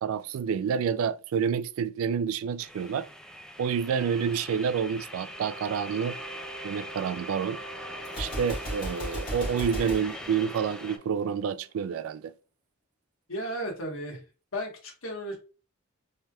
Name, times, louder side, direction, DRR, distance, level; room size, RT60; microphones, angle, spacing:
voice 1, 0.0-3.1 3.6-6.2 6.6-7.6 8.2-12.3, right 7 dB, 80° right, 0.3 m, -28 dB
sound 1, 2.6-11.0, equal, 5° left, 0.3 m, -42 dB
sound 2, 5.1-11.8, right 3 dB, 40° right, 0.7 m, -47 dB
Gunshot gunfire, 8.0-11.2, equal, 45° left, 1.7 m, -36 dB
voice 2, 13.3-14.2 14.5-15.4, equal, 75° left, 1.2 m, -34 dB
3.2 x 2.8 x 2.3 m
head